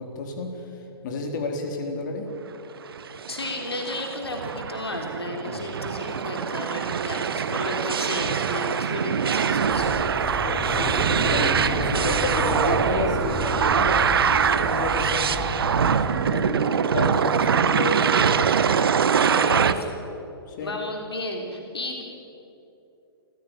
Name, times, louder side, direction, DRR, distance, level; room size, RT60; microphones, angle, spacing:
voice 1, 0.0-2.3 5.5-5.6 10.4-18.6 19.2-19.4 20.5-20.7, left 3 dB, 50° left, 3 dB, 4.2 m, -32 dB
sound 1, 2.9-19.7, right 7 dB, 70° right, 1.2 m, -23 dB
voice 2, 3.3-10.1 19.3-19.8 20.6-22.0, left 2 dB, 80° left, 2 dB, 3.6 m, -33 dB
sound 2, 9.5-16.4, left 1 dB, 15° left, 4.5 m, -32 dB
28.5 x 16.0 x 9.4 m, 2.8 s
figure-of-eight pair, 115°, 13 cm